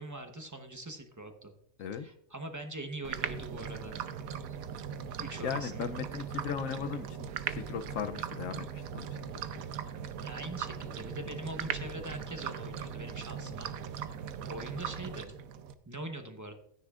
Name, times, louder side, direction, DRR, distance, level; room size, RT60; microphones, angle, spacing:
voice 1, 0.0-1.5 1.9-4.0 5.2-5.9 10.0-13.7 14.0-14.1 14.5-15.3 15.9-16.5, right 1 dB, 25° right, 5 dB, 0.4 m, -42 dB
sound 1, 3.0-15.7, right 8 dB, 65° right, 1.0 m, -39 dB
voice 2, 5.4-9.1, left 7 dB, 70° left, 10 dB, 0.8 m, -37 dB
14.0 x 9.9 x 2.4 m, 0.70 s
omnidirectional pair, 1.8 m